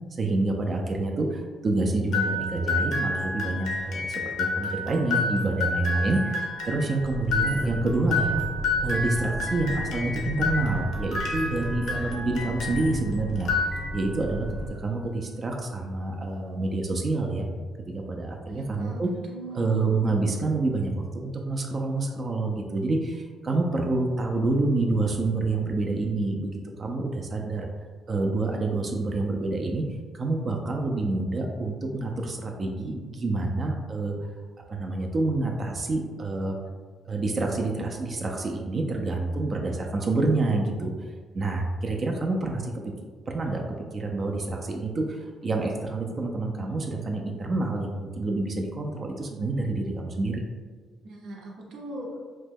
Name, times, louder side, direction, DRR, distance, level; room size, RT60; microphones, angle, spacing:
voice 1, 0.2-8.4 8.8-13.5 13.9-17.5 17.9-19.1 19.5-27.7 28.1-29.8 30.1-34.2 34.7-36.6 37.1-40.9 41.3-42.7 43.3-43.6 43.9-50.4, right 2 dB, 40° right, 1 dB, 0.4 m, -27 dB
sound 1, 2.1-13.0 13.4-14.2, left 3 dB, 80° left, 0.5 m, -30 dB
sound 2, 7.0-14.7, equal, 20° right, 0.8 m, -36 dB
sound 3, 7.4-7.6 8.9-9.1 9.5-10.2 10.5-10.7 11.6-11.7 13.7-14.0, left 1 dB, 20° left, 0.5 m, -41 dB
voice 2, 18.5-19.7 51.0-52.3, right 1 dB, 80° right, -2 dB, 0.7 m, -40 dB
2.9 x 2.2 x 3.4 m, 1.5 s
cardioid pair, 90°, 0 cm